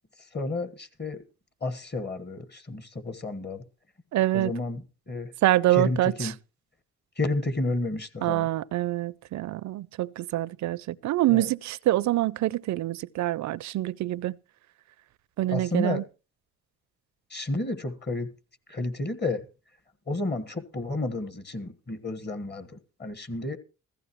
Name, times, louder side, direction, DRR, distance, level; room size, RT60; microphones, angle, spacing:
voice 1, 0.3-1.2 1.6-3.6 4.3-5.3 5.7-6.4 7.2-8.5 11.3-11.5 15.5-16.0 17.3-18.3 18.7-19.4 20.1-23.6, left 2 dB, 30° left, 1.6 m, -31 dB
voice 2, 4.1-4.5 5.4-6.3 8.2-14.4 15.4-16.0, right 15 dB, 60° right, 0.5 m, -26 dB
15.5 x 14.5 x 3.1 m
cardioid pair, 75°, 32 cm